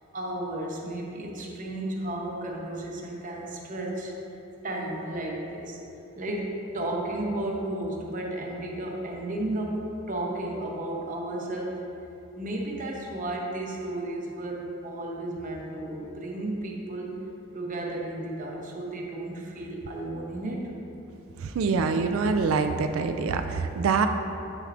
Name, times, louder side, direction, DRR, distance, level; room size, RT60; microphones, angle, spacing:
voice 1, 0.1-4.1 4.6-5.8 6.2-11.8 12.4-17.2 17.5-20.7, right 1 dB, 40° right, -1 dB, 0.8 m, -33 dB
voice 2, 21.4-24.1, right 5 dB, 80° right, 7 dB, 0.3 m, -25 dB
8.2 x 6.5 x 2.5 m, 2.9 s
head